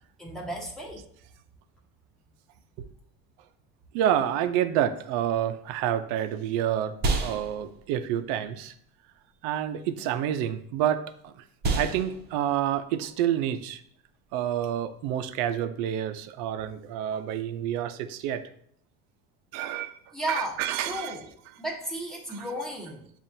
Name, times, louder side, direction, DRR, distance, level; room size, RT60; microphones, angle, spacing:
voice 1, 0.2-1.0 20.1-21.3 21.6-23.0, right 1 dB, ahead, -3 dB, 1.1 m, -34 dB
voice 2, 3.9-6.9 7.2-8.7 9.4-11.4 11.7-13.8 14.3-18.4 19.5-20.0 20.3-21.2 22.3-22.5, right 10 dB, 75° right, 10 dB, 0.5 m, -28 dB
sound 1, 5.7-15.3, right 3 dB, 35° right, 0.7 m, -35 dB
7.3 x 2.5 x 2.7 m, 0.65 s
cardioid pair, 125°, 30 cm